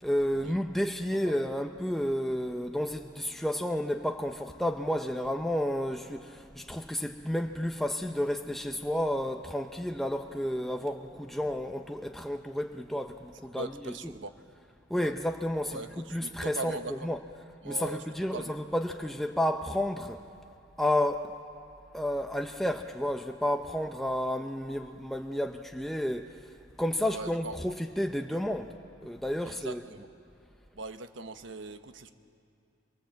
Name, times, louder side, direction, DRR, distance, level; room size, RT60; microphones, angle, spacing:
voice 1, 0.0-14.2 14.9-17.2 17.6-20.2 20.8-21.3 21.9-26.4 26.8-28.7 29.0-30.0, left 1 dB, ahead, 4 dB, 0.7 m, -31 dB
voice 2, 13.5-14.3 14.9-15.1 15.7-17.0 17.6-18.0 18.3-18.5 27.1-27.5 29.4-30.1 30.7-32.1, right 3 dB, 75° right, 9 dB, 1.1 m, -40 dB
25.5 x 23.0 x 7.6 m, 2.6 s
head